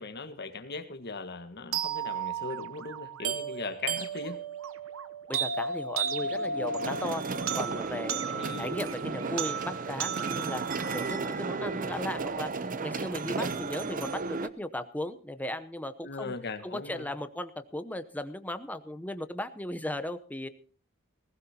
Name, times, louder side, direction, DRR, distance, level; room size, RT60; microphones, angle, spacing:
voice 1, 0.0-4.4 8.3-8.7 16.0-17.1, left 4 dB, 50° left, 9 dB, 1.6 m, -39 dB
sound 1, 1.7-11.7, right 6 dB, 75° right, 0.9 m, -35 dB
voice 2, 5.3-7.2 7.6-16.3 16.6-20.5, left 1 dB, 10° left, 10 dB, 0.8 m, -37 dB
sound 2, 6.2-14.5, right 4 dB, 40° right, 0.7 m, -34 dB
19.0 x 16.0 x 2.9 m, 0.39 s
head